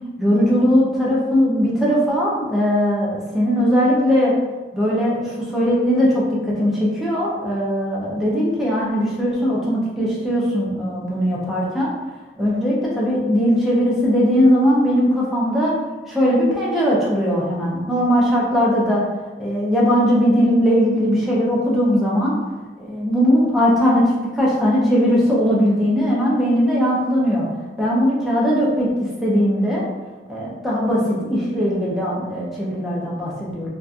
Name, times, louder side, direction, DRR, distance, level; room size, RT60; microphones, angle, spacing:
voice 1, 0.2-4.3 4.7-11.9 12.4-15.7 16.1-19.0 19.4-22.3 22.8-27.4 27.8-29.8 30.3-33.7, equal, ahead, -6 dB, 0.5 m, -19 dB
2.8 x 2.3 x 2.4 m, 1.3 s
head